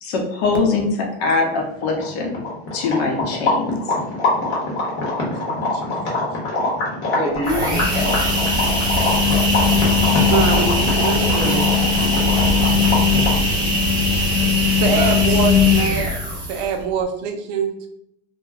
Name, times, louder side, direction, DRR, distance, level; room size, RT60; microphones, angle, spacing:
voice 1, 0.0-2.4 2.7-3.8, left 3 dB, 65° left, 1 dB, 0.9 m, -22 dB
sound 1, 1.5-1.6 1.8-13.5, left 2 dB, 40° left, 1.0 m, -24 dB
voice 2, 5.5-6.2 10.3-11.7 14.7-17.9, right 5 dB, 45° right, 4 dB, 0.5 m, -24 dB
voice 3, 7.1-8.4 14.8-15.2, equal, 20° left, -2 dB, 0.6 m, -28 dB
sound 2, 7.3-16.8, left 3 dB, 15° right, 0.9 m, -18 dB
2.3 x 2.1 x 3.4 m, 0.75 s
supercardioid pair, 155°, 33 cm